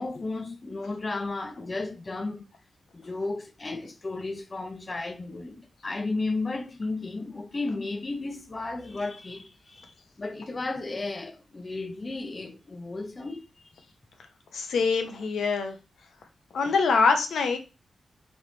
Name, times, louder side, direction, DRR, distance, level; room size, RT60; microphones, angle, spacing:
voice 1, 0.0-2.5 2.9-13.5, left 3 dB, 35° left, 0.7 m, -34 dB
voice 2, 14.5-15.8 16.5-17.6, left 4 dB, 85° left, 0.8 m, -24 dB
3.5 x 3.0 x 3.9 m
cardioid pair, 85°, 0 cm